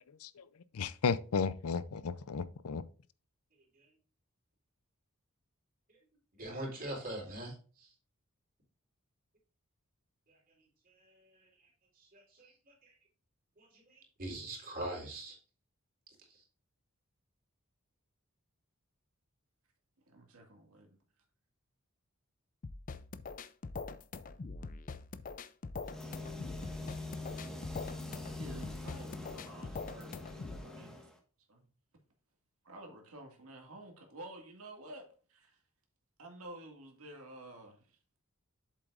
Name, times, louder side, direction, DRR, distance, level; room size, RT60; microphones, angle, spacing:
voice 1, 0.7-2.8, left 5 dB, 85° left, 0.5 m, -34 dB
voice 2, 6.4-7.9 10.3-10.4 10.9-11.7 12.0-12.9 13.6-15.4 16.2-16.4, right 1 dB, 40° right, 3.9 m, -44 dB
voice 3, 20.1-21.0 27.5-27.6 28.3-31.0 31.5-31.7 32.6-35.6 36.2-38.0, right 1 dB, 75° right, 2.0 m, -51 dB
sound 1, 22.6-30.6, left 4 dB, 40° left, 0.4 m, -43 dB
sound 2, 25.8-31.2, left 2 dB, ahead, 1.5 m, -44 dB
7.9 x 7.5 x 2.5 m
head